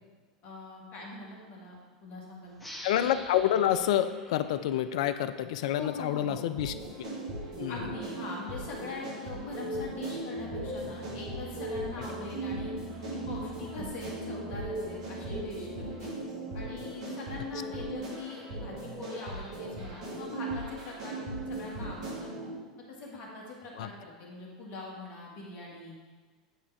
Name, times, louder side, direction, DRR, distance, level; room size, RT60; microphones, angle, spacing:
voice 1, 0.4-2.6 5.7-6.5 7.7-12.7 13.1-16.1 16.5-22.3 22.9-26.0, left 3 dB, 50° left, -2 dB, 1.8 m, -42 dB
sound 1, 2.6-5.8, equal, ahead, 1.2 m, -47 dB
voice 2, 2.8-6.7 7.6-7.8 23.8-23.9, left 11 dB, 65° left, 12 dB, 0.3 m, -28 dB
sound 2, 6.5-22.5, right 1 dB, 70° right, 1.8 m, -38 dB
sound 3, 10.4-16.1, right 3 dB, 50° right, 0.8 m, -45 dB
8.3 x 3.6 x 4.6 m, 1.4 s
hypercardioid pair, 90°, 4 cm